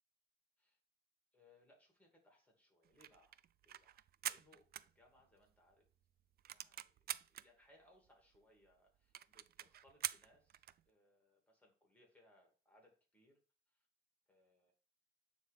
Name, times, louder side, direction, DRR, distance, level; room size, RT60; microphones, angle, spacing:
voice 1, 1.3-3.4 3.6-5.9 6.5-13.4 13.7-13.9 14.3-14.7, left 1 dB, 5° left, 1 dB, 2.8 m, -70 dB
sound 1, 2.8-5.5 5.9-6.0 6.2-7.5 8.1-8.2 8.3-8.4 8.7-8.8 9.1-10.8, right 11 dB, 50° right, 0.4 m, -46 dB
8.8 x 3.8 x 3.6 m, 0.36 s
cardioid pair, 90°, 20 cm